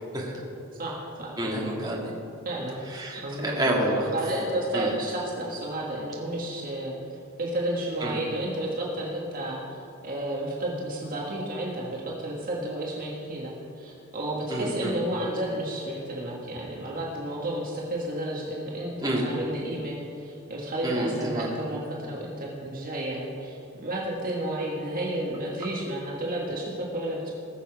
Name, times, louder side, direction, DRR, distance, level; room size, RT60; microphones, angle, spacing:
voice 1, 0.8-1.7 2.4-2.8 3.2-3.6 4.1-7.0 7.4-27.3, right 1 dB, 45° right, -3 dB, 1.7 m, -32 dB
voice 2, 1.4-2.1 2.9-4.1 4.7-4.9 8.0-8.2 14.5-15.0 19.0-19.2 20.8-21.5, right 1 dB, 20° right, -3 dB, 2.0 m, -28 dB
20.0 x 6.9 x 4.8 m, 2.5 s
head